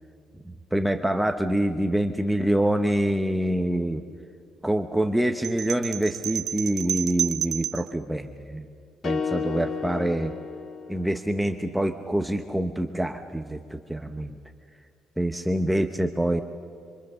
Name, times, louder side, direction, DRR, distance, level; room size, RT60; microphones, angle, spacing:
voice 1, 0.5-4.0 4.6-8.7 9.0-10.3 10.9-14.4 15.2-16.4, right 1 dB, 5° right, 6 dB, 0.8 m, -26 dB
sound 1, 5.4-7.9, right 11 dB, 55° right, 0.6 m, -30 dB
sound 2, 9.0-11.4, left 6 dB, 35° left, 1.6 m, -32 dB
26.5 x 25.0 x 6.8 m, 2.4 s
cardioid pair, 175°, 0 cm